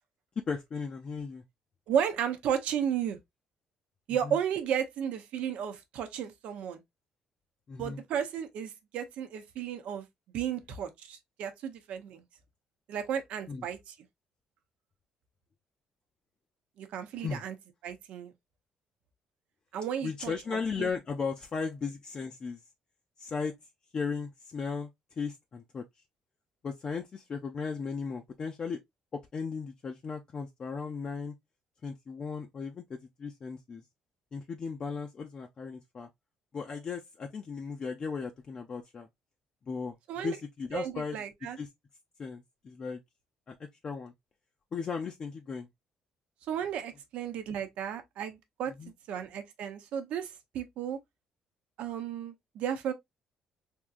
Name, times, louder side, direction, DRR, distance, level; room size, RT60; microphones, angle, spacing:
voice 1, 0.5-1.4 4.2-4.4 7.7-8.0 13.5-13.6 17.2-17.4 20.0-22.6 23.2-23.5 23.9-24.9 25.2-25.8 26.6-28.8 29.1-31.3 31.8-33.8 34.3-36.1 36.5-39.1 39.7-41.2 41.6-41.7 42.2-43.0 43.5-44.1 44.7-45.7 48.8-48.9, left 5 dB, 40° left, 0.5 m, -36 dB
voice 2, 1.9-3.2 4.1-6.8 7.8-10.1 10.3-12.2 12.9-13.9 16.8-17.5 17.8-18.3 19.7-20.9 40.1-40.4 40.7-41.6 46.5-48.7 49.1-51.0 51.8-52.9, right 8 dB, 75° right, 0.8 m, -34 dB
3.5 x 2.8 x 2.4 m
cardioid pair, 110°, 2 cm